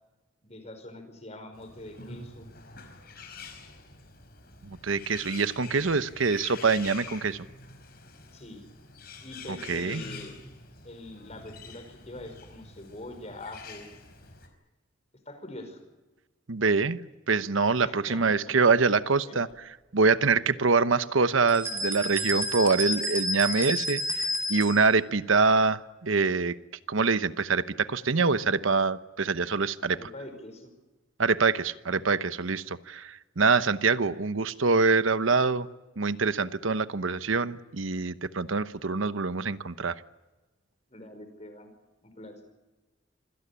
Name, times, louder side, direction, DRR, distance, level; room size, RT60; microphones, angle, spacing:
voice 1, 0.4-2.5 8.3-8.6 9.2-10.4 10.8-13.9 15.2-15.8 17.8-18.3 19.2-19.4 22.3-22.4 29.9-30.7 40.9-41.7 42.0-42.4, left 1 dB, 35° left, 7 dB, 5.3 m, -44 dB
Bird, 1.5-14.5, left 4 dB, 50° left, 4.9 m, -46 dB
voice 2, 4.7-7.4 9.7-10.0 16.5-19.5 19.9-26.6 26.9-30.0 31.2-35.7 36.0-39.9, right 4 dB, 85° right, 13 dB, 1.0 m, -25 dB
sound 1, 21.5-24.8, equal, 15° right, 3.7 m, -30 dB
26.5 x 17.0 x 9.9 m, 1.1 s
head